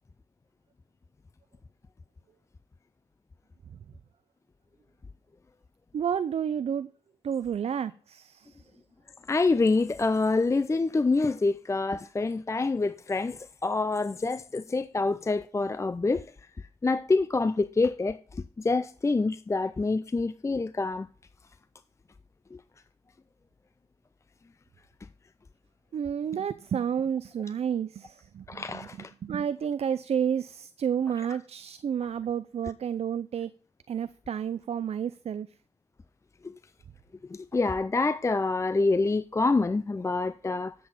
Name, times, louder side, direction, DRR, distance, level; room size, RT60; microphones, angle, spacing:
voice 1, 5.9-6.9 7.2-8.6 25.9-28.8 29.2-33.5 33.9-35.5, right 8 dB, 65° right, 0.4 m, -30 dB
voice 2, 9.3-16.2 16.8-21.1 22.5-22.6 28.5-29.1 36.4-36.5 37.3-40.7, left 3 dB, 25° left, 0.4 m, -26 dB
8.5 x 7.6 x 4.1 m
cardioid pair, 50°, 12 cm